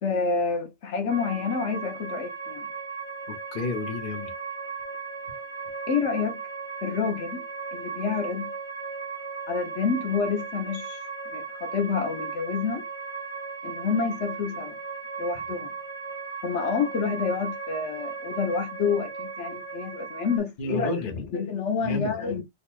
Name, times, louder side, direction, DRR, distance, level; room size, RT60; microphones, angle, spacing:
voice 1, 0.0-2.7 5.9-6.4 6.8-7.5 7.7-8.5 9.5-11.0 11.3-12.8 13.6-14.8 15.2-15.7 16.4-21.0 21.3-22.4, left 5 dB, 75° left, 1.2 m, -28 dB
sound 1, 1.1-20.4, right 5 dB, 10° left, 1.6 m, -36 dB
voice 2, 3.3-4.3 20.6-21.2 21.8-22.4, left 3 dB, 50° left, 1.0 m, -31 dB
3.9 x 3.0 x 2.4 m
omnidirectional pair, 1.2 m